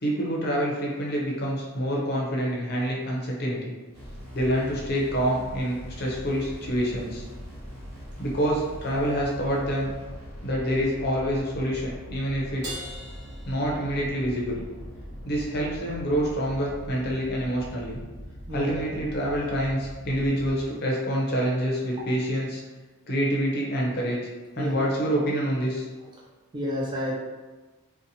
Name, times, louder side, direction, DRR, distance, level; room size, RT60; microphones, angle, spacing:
voice 1, 0.0-3.7 4.3-7.2 8.2-9.9 10.4-12.7 13.4-14.6 15.2-18.0 18.5-22.6 23.1-24.2 24.6-25.9, equal, 45° left, -3 dB, 0.6 m, -27 dB
sound 1, 3.9-20.6, equal, 70° right, 1.2 m, -41 dB
Crash cymbal, 12.6-14.4, right 1 dB, 50° right, 0.9 m, -40 dB
voice 2, 26.5-27.2, left 1 dB, 20° right, -4 dB, 0.3 m, -30 dB
2.7 x 2.1 x 2.6 m, 1.3 s
head